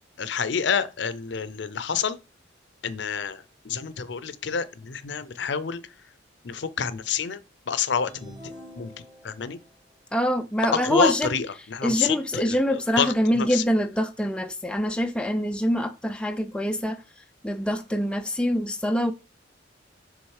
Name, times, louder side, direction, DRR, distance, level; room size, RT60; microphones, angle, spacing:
voice 1, 0.2-2.2 2.8-5.8 6.4-7.4 7.7-8.9 9.2-9.6 10.7-13.6, left 6 dB, 60° left, 0.5 m, -28 dB
sound 1, 8.1-9.6, equal, 25° right, 1.3 m, -45 dB
voice 2, 10.1-11.3 11.8-17.0 17.4-19.1, equal, 5° left, 0.3 m, -25 dB
6.2 x 3.6 x 4.8 m
head